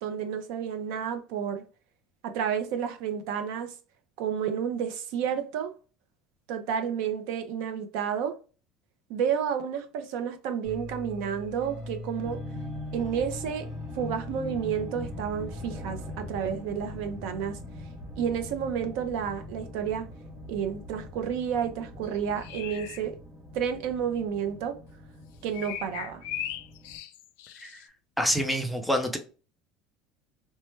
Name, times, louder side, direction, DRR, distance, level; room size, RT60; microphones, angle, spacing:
voice 1, 0.0-1.6 2.2-3.7 4.2-5.7 6.5-8.4 9.1-12.4 12.9-13.7 13.9-17.6 18.2-20.1 20.5-23.2 23.5-24.8 25.4-26.2, right 8 dB, 65° right, 0.5 m, -31 dB
sound 1, 10.6-27.0, left 2 dB, 40° right, 0.8 m, -41 dB
sound 2, 22.0-23.0 25.5-27.8, left 11 dB, 80° left, 0.3 m, -38 dB
voice 2, 28.2-29.2, equal, ahead, 0.4 m, -27 dB
3.1 x 2.1 x 3.1 m
cardioid pair, 165°, 0 cm